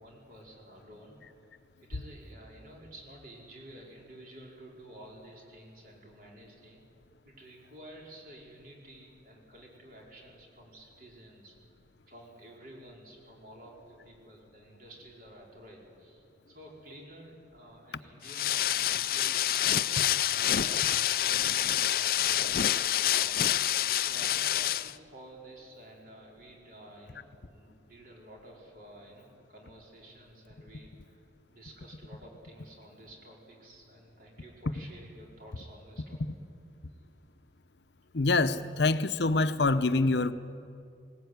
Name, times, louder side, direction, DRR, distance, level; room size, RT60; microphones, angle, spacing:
voice 1, 0.0-6.8 7.2-11.5 12.0-19.7 20.2-23.4 23.9-31.2 31.5-36.2, right 1 dB, 50° right, -2 dB, 4.9 m, -51 dB
sound 1, 18.2-24.9, left 12 dB, 55° left, 0.4 m, -27 dB
voice 2, 38.1-40.3, left 3 dB, 75° left, 12 dB, 0.8 m, -25 dB
20.5 x 18.5 x 9.5 m, 2.5 s
head